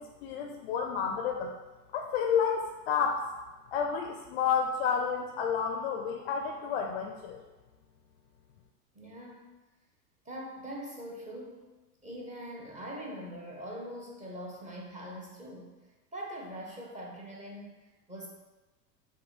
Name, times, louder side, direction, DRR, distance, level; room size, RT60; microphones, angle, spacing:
voice 1, 0.0-1.5 1.9-3.2 3.7-7.4, left 6 dB, 40° left, 3 dB, 0.4 m, -30 dB
voice 2, 8.9-9.6 10.2-11.7 12.0-15.8 16.1-18.3, equal, 15° right, -1 dB, 0.8 m, -42 dB
6.9 x 2.6 x 2.8 m, 1.2 s
figure-of-eight pair, 80°, 48 cm